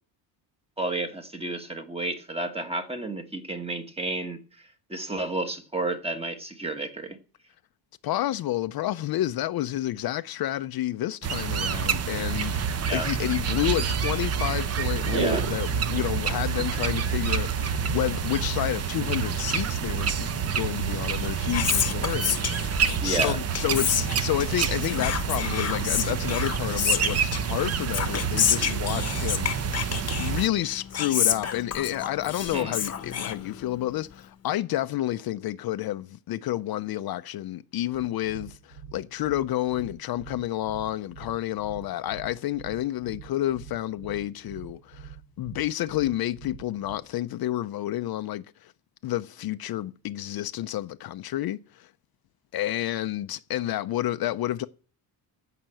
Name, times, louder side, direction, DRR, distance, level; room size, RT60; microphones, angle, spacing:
voice 1, 0.8-4.4 4.9-7.2 12.9-13.1 15.1-15.5 23.0-23.4 32.4-32.7, right 2 dB, 15° right, 1.3 m, -31 dB
voice 2, 8.0-29.8 30.2-48.7 49.0-51.9 52.5-54.7, left 14 dB, 55° left, 0.6 m, -30 dB
sound 1, 11.2-30.5, right 7 dB, 35° right, 0.7 m, -28 dB
Whispering, 21.1-33.9, left 8 dB, 35° left, 1.0 m, -30 dB
sound 2, 37.9-47.0, right 7 dB, 90° right, 2.6 m, -45 dB
14.5 x 5.9 x 7.7 m
cardioid pair, 135°, 44 cm